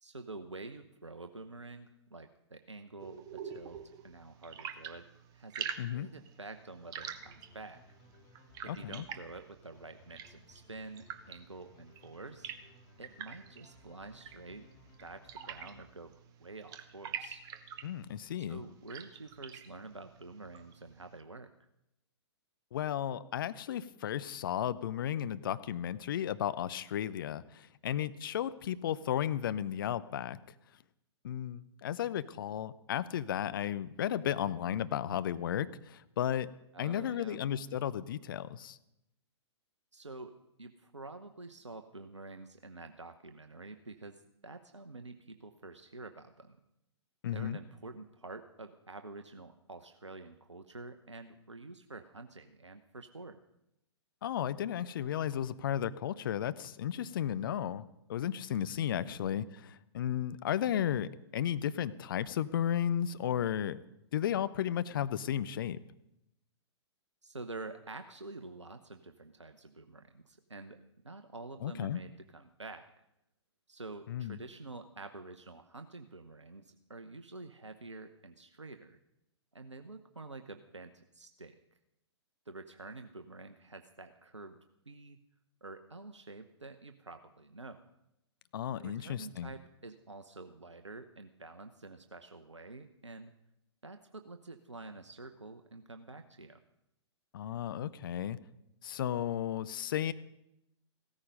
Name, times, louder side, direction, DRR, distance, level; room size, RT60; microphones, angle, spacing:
voice 1, 0.0-5.1 5.3-7.8 8.6-12.5 13.0-14.7 15.0-16.1 16.4-17.4 18.4-21.5 36.7-37.4 39.9-40.3 40.6-44.2 44.4-46.6 47.3-53.4 58.9-59.2 67.2-70.8 71.0-72.8 73.7-79.0 79.5-81.5 82.5-84.6 84.9-85.2 85.6-87.9 88.8-93.3 93.8-96.6, right 3 dB, 80° right, 7 dB, 0.9 m, -48 dB
sound 1, 3.0-21.2, right 8 dB, 25° right, 0.9 m, -47 dB
sound 2, 7.0-16.3, left 4 dB, 25° left, 4.0 m, -62 dB
voice 2, 8.7-9.0 17.8-18.6 22.7-30.4 31.2-36.5 36.8-38.8 47.2-47.6 54.2-57.8 58.1-63.8 64.1-65.8 71.6-72.0 74.1-74.4 88.5-89.5 97.3-98.4 98.8-100.1, left 10 dB, 50° left, 14 dB, 0.7 m, -34 dB
16.0 x 14.0 x 5.3 m, 0.84 s
figure-of-eight pair, 115°, 15 cm